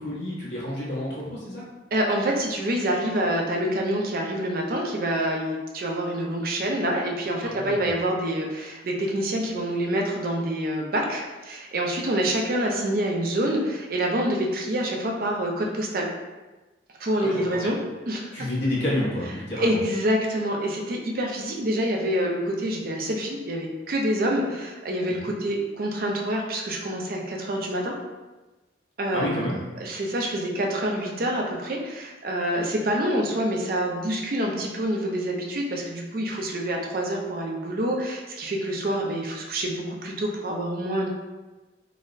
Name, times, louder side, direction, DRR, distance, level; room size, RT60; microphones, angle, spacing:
voice 1, 0.0-1.6 7.4-7.9 17.2-17.6 18.3-19.8 29.1-29.6, left 1 dB, 75° left, -7 dB, 1.0 m, -29 dB
voice 2, 1.9-16.1 17.0-17.8 18.1-18.5 19.6-27.9 29.0-29.5 29.8-41.1, right 1 dB, 50° right, 0 dB, 0.5 m, -27 dB
4.0 x 2.0 x 2.5 m, 1.2 s
head